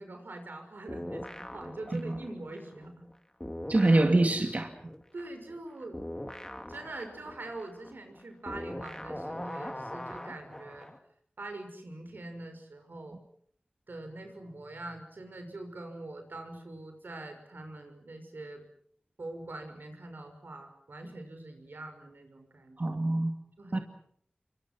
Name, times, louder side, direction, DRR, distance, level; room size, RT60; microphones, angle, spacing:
voice 1, 0.0-3.1 5.1-6.0 6.7-10.9 11.4-13.2 13.9-18.6 19.2-23.0 23.6-23.8, right 2 dB, 85° right, 5 dB, 6.2 m, -43 dB
sound 1, 0.9-3.1 3.4-11.0, left 1 dB, 20° left, 2.9 m, -42 dB
voice 2, 3.7-4.7 22.8-23.3 23.7-23.8, right 2 dB, 50° right, 5 dB, 2.3 m, -25 dB
29.0 x 24.5 x 6.1 m, 0.63 s
wide cardioid pair, 45°, 3 cm